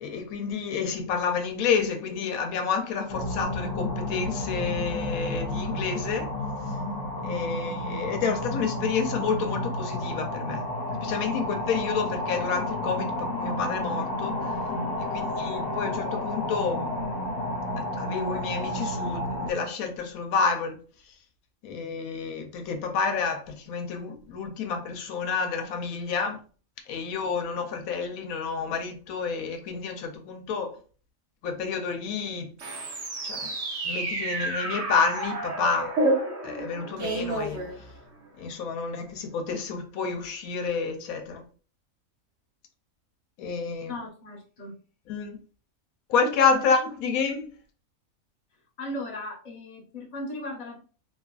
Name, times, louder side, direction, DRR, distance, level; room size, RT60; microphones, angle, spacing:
voice 1, 0.0-6.3 7.2-10.6 11.0-14.4 15.0-17.0 17.8-20.8 21.6-26.4 26.9-30.8 31.4-32.5 33.2-33.5 33.8-35.9 36.4-37.6 38.4-41.4 43.4-43.9 45.1-45.4 46.1-47.5, left 5 dB, 90° left, 1.0 m, -29 dB
sound 1, 3.1-19.5, left 1 dB, 65° left, 0.9 m, -31 dB
sound 2, 32.6-38.3, right 2 dB, 60° right, 1.0 m, -30 dB
voice 2, 43.9-44.7 46.5-46.6 48.8-50.8, left 1 dB, 35° left, 0.8 m, -37 dB
2.9 x 2.4 x 2.2 m
omnidirectional pair, 1.4 m